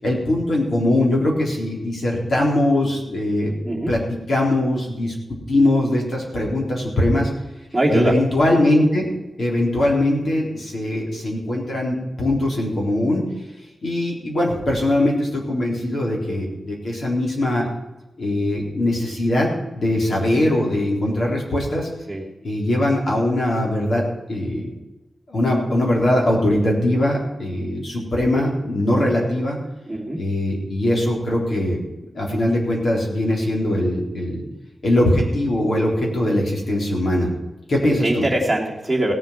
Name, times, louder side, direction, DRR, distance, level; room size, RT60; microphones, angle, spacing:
voice 1, 0.0-3.5 3.9-5.1 5.5-7.3 7.9-9.1 9.4-13.2 13.8-17.7 18.2-19.5 19.8-21.9 22.4-24.7 25.3-29.6 30.1-31.8 32.1-34.4 34.8-37.3 37.7-38.2, left 1 dB, 55° left, -1 dB, 3.9 m, -21 dB
voice 2, 7.7-8.1 22.1-22.2 29.9-30.2 37.8-39.1, right 1 dB, 5° right, -5 dB, 2.9 m, -21 dB
17.0 x 7.6 x 5.9 m, 1.1 s
wide cardioid pair, 150°, 0 cm